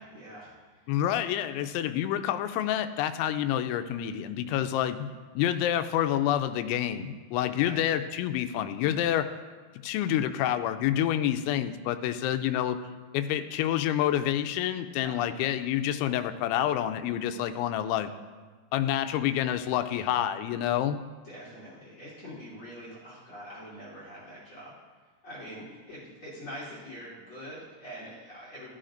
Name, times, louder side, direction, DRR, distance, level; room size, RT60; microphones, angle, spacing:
voice 1, 0.0-0.9 7.6-7.8 15.0-15.4 19.9-20.1 21.2-24.8 25.2-28.7, equal, 30° left, -7 dB, 3.7 m, -44 dB
voice 2, 0.9-5.1 5.3-9.3 9.8-12.8 13.1-18.1 18.7-21.0, left 11 dB, 85° left, 10 dB, 2.9 m, -28 dB
14.0 x 14.0 x 2.6 m, 1.4 s
omnidirectional pair, 5.3 m